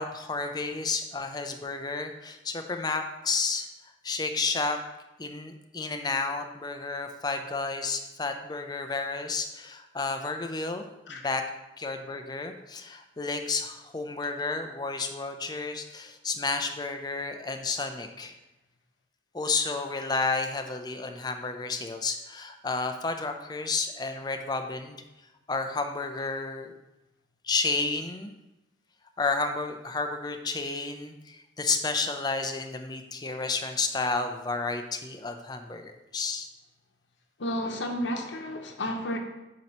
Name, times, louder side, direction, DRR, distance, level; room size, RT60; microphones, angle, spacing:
voice 1, 0.0-3.7 4.0-4.8 5.2-11.4 11.8-18.3 19.3-25.0 25.5-26.7 27.4-28.3 29.2-36.5, left 3 dB, 20° left, 6 dB, 0.5 m, -31 dB
voice 2, 37.4-39.2, left 1 dB, 85° left, 3 dB, 0.8 m, -31 dB
7.4 x 2.9 x 5.4 m, 0.97 s
head